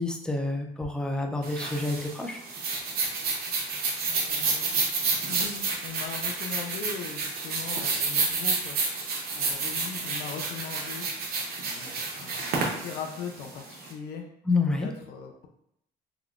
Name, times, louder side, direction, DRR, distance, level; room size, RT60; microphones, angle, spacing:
voice 1, 0.0-2.4 14.5-14.9, left 3 dB, 5° left, 2 dB, 0.4 m, -28 dB
sound 1, 1.4-13.9, right 4 dB, 65° right, 0.7 m, -30 dB
voice 2, 4.1-4.8 5.3-8.8 9.3-11.1 11.6-14.3 14.6-15.5, left 6 dB, 75° left, 3 dB, 0.5 m, -40 dB
3.6 x 2.2 x 2.4 m, 0.74 s
cardioid pair, 110°, 17 cm